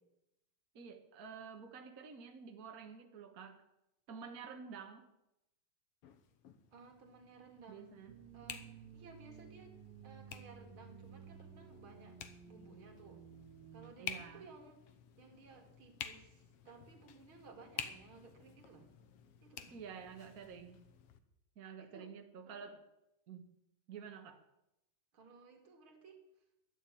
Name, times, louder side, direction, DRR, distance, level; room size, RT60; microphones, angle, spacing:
voice 1, 0.7-3.6 4.1-5.1 7.7-8.2 14.0-14.5 19.7-20.8 21.5-22.8 23.3-23.5 23.9-24.4, right 6 dB, 70° right, 4 dB, 0.8 m, -50 dB
sound 1, 6.0-21.2, left 8 dB, 75° left, 1.4 m, -51 dB
voice 2, 6.7-8.0 8.3-9.8 10.0-12.2 12.5-13.2 13.7-14.8 15.2-18.9 19.4-19.8 21.8-22.1 22.4-22.7 25.1-26.2, right 4 dB, 45° right, 4 dB, 2.5 m, -57 dB
sound 2, 8.1-13.9, right 8 dB, 90° right, 2.8 m, -55 dB
12.0 x 11.0 x 8.5 m, 0.88 s
omnidirectional pair, 3.9 m